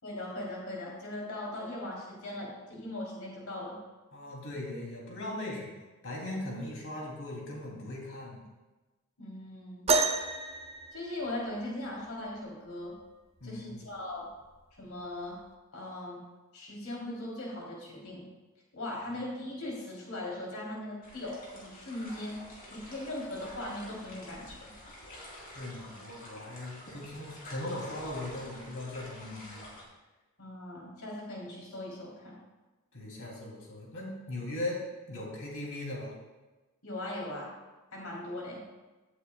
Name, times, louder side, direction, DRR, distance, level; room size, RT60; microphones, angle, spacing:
voice 1, 0.0-3.8 9.2-9.9 10.9-12.9 13.4-14.2 14.8-15.4 15.7-16.2 16.5-18.3 18.7-24.6 30.4-32.3 36.8-37.5 37.9-38.6, left 1 dB, 75° left, -3 dB, 3.3 m, -39 dB
voice 2, 4.1-5.7 6.0-8.4 13.4-13.8 25.4-29.6 32.9-36.1, left 1 dB, 60° left, -2 dB, 3.0 m, -39 dB
sound 1, 9.9-11.8 13.4-13.5 14.3-14.6 15.5-15.6, right 3 dB, 30° right, 0.6 m, -30 dB
sound 2, 21.0-29.8, left 1 dB, 40° left, 3.2 m, -48 dB
16.5 x 8.3 x 2.3 m, 1.2 s
head